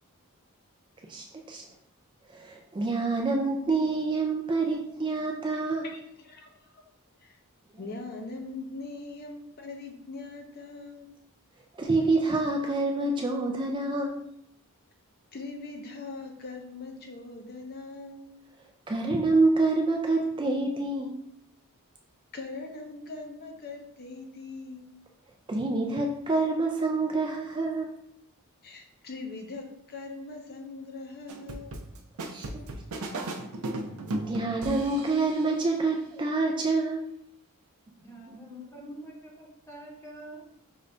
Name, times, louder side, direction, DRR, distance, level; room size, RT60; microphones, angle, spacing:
voice 1, 1.1-1.6 2.3-5.9 11.8-14.3 18.9-21.2 25.5-27.9 32.3-32.5 34.2-37.1, right 3 dB, 20° right, 1 dB, 0.3 m, -27 dB
voice 2, 5.8-6.8 7.2-7.4 7.8-11.2 15.3-18.4 22.3-24.9 28.6-31.8, left 3 dB, 45° left, 3 dB, 0.5 m, -41 dB
sound 1, 31.3-35.6, right 2 dB, 80° right, 0.5 m, -36 dB
voice 3, 38.0-40.5, equal, 10° left, -1 dB, 0.8 m, -45 dB
5.4 x 2.5 x 3.3 m, 0.74 s
head